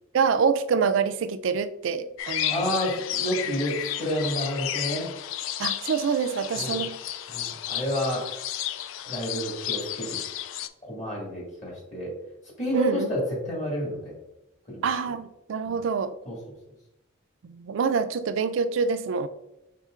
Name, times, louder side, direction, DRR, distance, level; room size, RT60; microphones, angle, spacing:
voice 1, 0.1-2.7 5.6-6.9 12.7-13.1 14.8-16.1 17.4-19.3, right 5 dB, 75° right, 13 dB, 0.4 m, -26 dB
sound 1, 2.2-10.7, left 11 dB, 80° left, 0.3 m, -32 dB
voice 2, 2.5-5.1 6.5-6.8 7.3-8.2 9.0-10.2 10.8-12.1 12.6-14.1 14.7-14.8 15.6-15.8 16.2-16.4, equal, 35° left, -4 dB, 1.5 m, -30 dB
5.5 x 3.7 x 2.4 m, 0.91 s
head